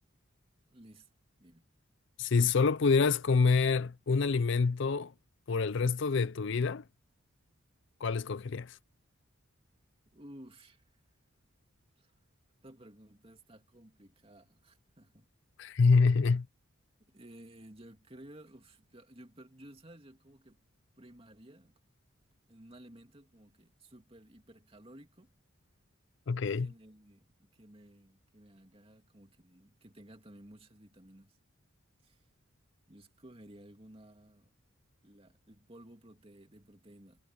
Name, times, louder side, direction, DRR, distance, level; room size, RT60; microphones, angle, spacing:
voice 1, 0.7-1.1 1.4-1.6 10.1-10.8 12.0-12.1 12.6-15.3 17.1-20.6 21.0-21.8 22.5-25.3 26.5-31.4 32.0-32.2 32.9-34.5 35.0-37.2, right 1 dB, 25° right, 2.7 m, -55 dB
voice 2, 2.2-5.1 5.5-6.8 8.0-8.7 15.6-16.5 26.3-26.7, left 4 dB, 60° left, 0.5 m, -26 dB
head